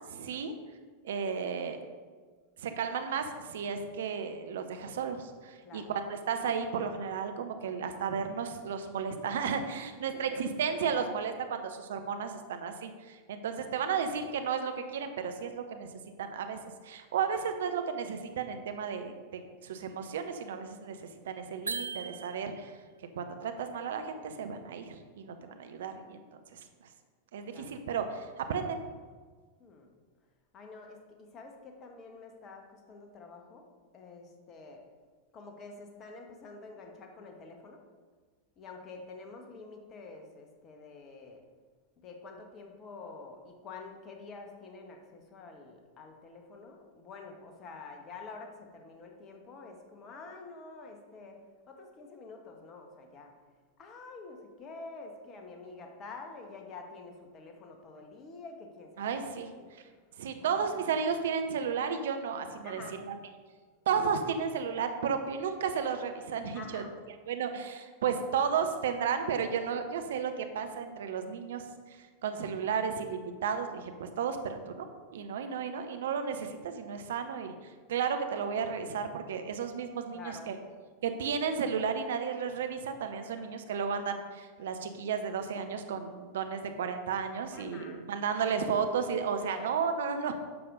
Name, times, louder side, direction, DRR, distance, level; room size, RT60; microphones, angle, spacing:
voice 1, 0.1-0.5 1.0-1.8 2.6-15.9 16.2-22.7 23.2-26.2 26.5-26.6 27.3-28.8 59.0-59.5 60.2-63.1 63.9-66.8 67.3-71.6 71.9-74.9 75.1-80.5 81.0-90.4, right 6 dB, 60° right, 7 dB, 0.8 m, -33 dB
voice 2, 10.0-10.4 27.5-27.7 29.6-29.9 30.5-33.6 33.9-34.8 35.3-37.8 38.6-41.4 42.0-51.4 51.7-53.3 53.8-59.7 60.4-60.9 62.6-63.0 66.5-67.0 80.1-80.5 83.2-83.5 87.5-88.1 89.4-89.8, left 3 dB, 30° left, 3 dB, 1.4 m, -48 dB
sound 1, 21.7-22.8, right 5 dB, 75° right, 0.4 m, -38 dB
10.5 x 6.9 x 3.8 m, 1.5 s
figure-of-eight pair, 90°, 0 cm